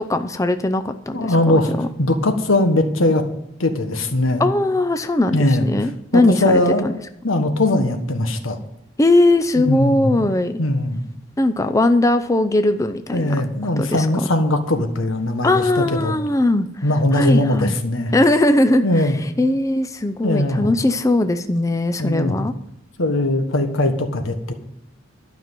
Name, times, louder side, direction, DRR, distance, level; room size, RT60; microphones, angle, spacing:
voice 1, 0.0-1.9 4.4-6.9 9.0-10.6 11.4-13.4 13.8-14.3 15.4-16.8 17.1-17.7 18.1-22.5, left 2 dB, 15° left, 8 dB, 0.5 m, -19 dB
voice 2, 1.1-1.7 2.0-3.2 3.6-4.5 5.3-5.7 6.1-6.8 7.2-8.6 9.6-10.3 10.6-11.0 13.1-15.6 15.9-16.1 16.8-18.1 18.8-19.2 20.2-20.7 22.0-22.4 23.0-24.5, left 1 dB, 85° left, 7 dB, 1.5 m, -20 dB
12.5 x 6.0 x 9.1 m, 0.80 s
head